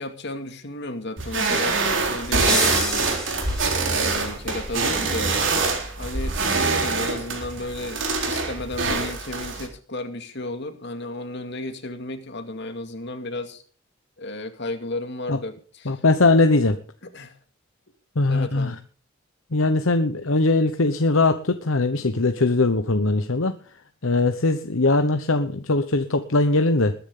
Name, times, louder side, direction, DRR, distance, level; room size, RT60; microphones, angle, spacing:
voice 1, 0.0-3.1 3.9-5.4 6.0-13.6 14.2-16.0 17.1-17.4 18.3-18.8 22.0-22.1, left 2 dB, 55° left, 7 dB, 2.4 m, -33 dB
sound 1, 1.2-9.7, right 4 dB, 60° right, 4.0 m, -24 dB
sound 2, 2.5-4.1, left 1 dB, 5° left, 7.9 m, -29 dB
voice 2, 15.9-16.8 18.2-18.7 19.5-23.5 24.0-26.9, left 2 dB, 70° left, 8 dB, 1.0 m, -20 dB
21.0 x 10.5 x 3.8 m, 0.41 s
head